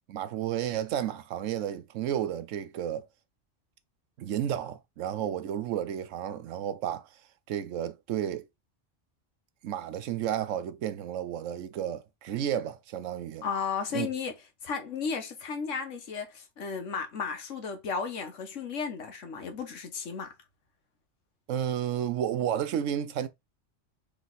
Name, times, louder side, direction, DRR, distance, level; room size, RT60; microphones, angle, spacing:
voice 1, 0.1-3.1 4.2-7.1 7.5-8.5 9.6-13.4 13.9-14.1 21.5-23.3, right 10 dB, 85° right, 1.0 m, -32 dB
voice 2, 13.4-14.3 14.6-20.3, left 6 dB, 80° left, 1.3 m, -34 dB
3.4 x 3.2 x 4.0 m
omnidirectional pair, 1.3 m